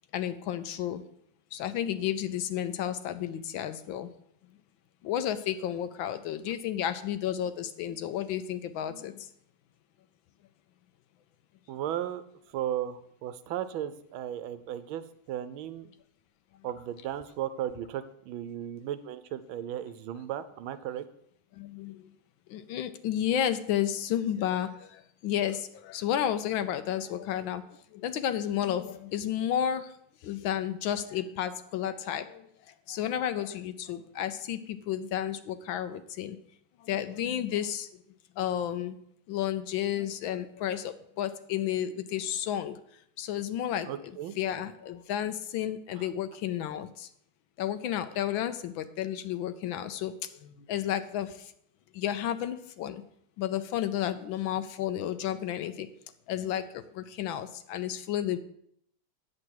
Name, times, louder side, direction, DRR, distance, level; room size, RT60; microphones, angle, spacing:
voice 1, 0.1-1.0 1.5-4.1 5.0-9.3 21.6-22.0 22.5-27.6 27.9-29.9 30.2-32.4 32.9-36.4 36.9-37.9 38.4-39.0 39.3-42.8 43.2-47.1 47.6-50.2 50.4-51.3 51.9-53.0 53.4-55.9 56.3-58.4, left 10 dB, 75° left, 11 dB, 1.3 m, -32 dB
voice 2, 11.7-12.2 12.5-15.9 16.6-21.0 43.9-44.3 46.0-46.1, right 11 dB, 75° right, 12 dB, 1.3 m, -35 dB
8.8 x 7.5 x 4.6 m, 0.70 s
omnidirectional pair, 2.3 m